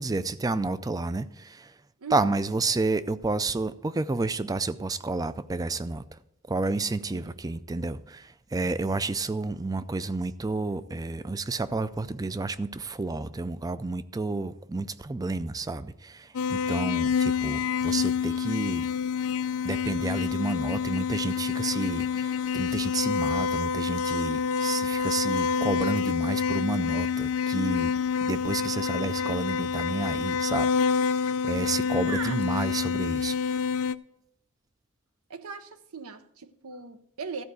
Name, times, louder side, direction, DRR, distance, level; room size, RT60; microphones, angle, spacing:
voice 1, 0.0-1.7 2.1-6.2 6.5-18.9 19.6-27.9 28.2-33.6, right 3 dB, 15° right, 0.4 m, -30 dB
voice 2, 2.0-2.4 7.1-7.3 32.1-32.4 35.3-37.4, right 5 dB, 75° right, 0.7 m, -39 dB
sound 1, 16.3-33.9, left 6 dB, 75° left, 0.4 m, -27 dB
13.5 x 4.7 x 8.1 m
head